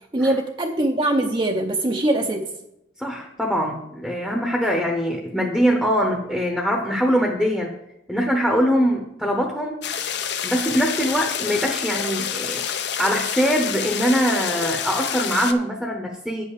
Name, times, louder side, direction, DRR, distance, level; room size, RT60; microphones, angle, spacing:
voice 1, 0.1-2.5, right 1 dB, 25° right, 2 dB, 0.6 m, -22 dB
voice 2, 3.0-7.7 8.1-9.8 10.4-12.6 13.0-16.4, equal, 5° left, 2 dB, 0.8 m, -22 dB
sound 1, 9.8-15.5, left 8 dB, 60° left, 0.6 m, -28 dB
8.9 x 5.5 x 6.6 m, 0.84 s
head